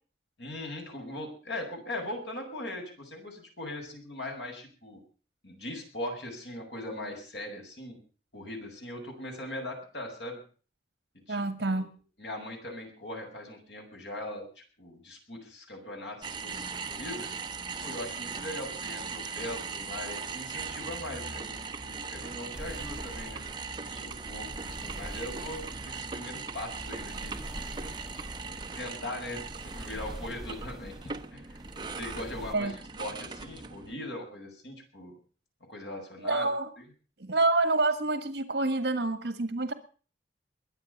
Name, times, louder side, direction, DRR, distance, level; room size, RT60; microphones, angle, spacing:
voice 1, 0.4-5.0 5.4-8.0 8.3-10.4 11.3-11.8 12.2-17.3 17.8-21.6 21.8-23.4 23.8-27.6 28.8-30.9 31.3-31.6 32.0-35.1 35.7-36.5, left 1 dB, 90° left, 2 dB, 7.8 m, -40 dB
voice 2, 11.3-11.9 32.5-32.7 36.2-36.7 37.2-39.7, right 2 dB, 65° right, 11 dB, 1.6 m, -27 dB
sound 1, 16.2-33.9, right 4 dB, 25° right, 1.2 m, -39 dB
sound 2, 22.5-32.5, right 1 dB, ahead, 2.0 m, -44 dB
22.5 x 8.8 x 7.2 m, 0.41 s
head